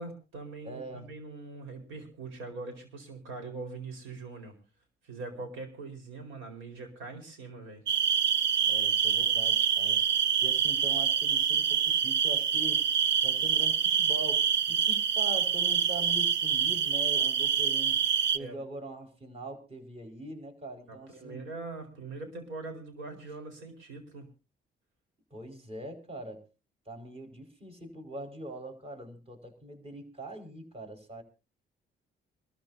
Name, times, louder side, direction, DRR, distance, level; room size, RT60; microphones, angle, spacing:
voice 1, 0.0-4.5 5.0-7.8 18.4-18.6 20.9-24.3, right 3 dB, 85° right, 6 dB, 4.6 m, -42 dB
voice 2, 0.6-1.1 8.7-10.0 10.4-12.8 13.2-18.0 18.3-21.4 25.3-26.4 26.8-31.2, right 1 dB, 30° right, 2 dB, 5.0 m, -42 dB
sound 1, 7.9-18.4, right 7 dB, 65° right, 0.7 m, -26 dB
26.0 x 13.5 x 2.7 m, 0.30 s
cardioid pair, 90°, 20 cm